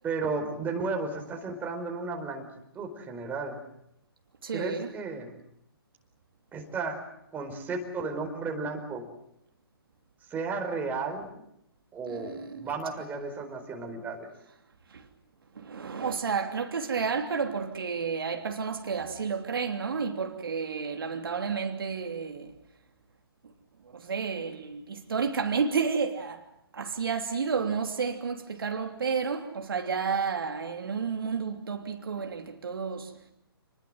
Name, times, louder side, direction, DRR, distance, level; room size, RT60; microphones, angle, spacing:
voice 1, 0.0-2.5 2.7-3.6 4.5-5.3 6.5-7.0 7.3-9.1 10.3-11.3 11.9-14.3, right 4 dB, 15° right, 4.6 m, -33 dB
voice 2, 4.4-4.9 12.1-12.7 14.9-15.0 15.5-22.5 23.9-26.5 26.7-33.1, right 5 dB, 65° right, 3.0 m, -31 dB
28.5 x 21.0 x 7.9 m
figure-of-eight pair, 130°, 13 cm